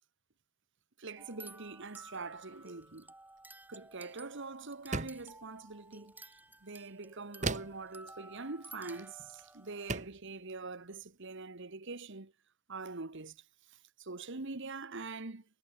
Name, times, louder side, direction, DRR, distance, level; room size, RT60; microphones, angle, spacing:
voice 1, 1.0-3.1 3.7-12.3 12.7-15.4, right 3 dB, 60° right, 1.5 m, -44 dB
sound 1, 1.2-10.0, right 2 dB, 10° right, 5.2 m, -54 dB
sound 2, 4.9-5.3 7.4-7.9 9.2-9.3 9.9-10.2, right 3 dB, 35° right, 1.6 m, -36 dB
head